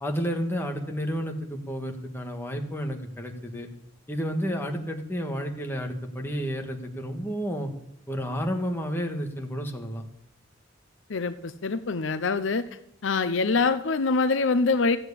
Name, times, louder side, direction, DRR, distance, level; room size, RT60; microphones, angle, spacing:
voice 1, 0.0-3.7 4.1-7.7 8.1-10.0, equal, 10° left, 2 dB, 1.6 m, -31 dB
voice 2, 11.1-12.6 13.0-15.0, left 4 dB, 75° left, 12 dB, 0.7 m, -24 dB
14.5 x 7.9 x 8.4 m, 0.77 s
head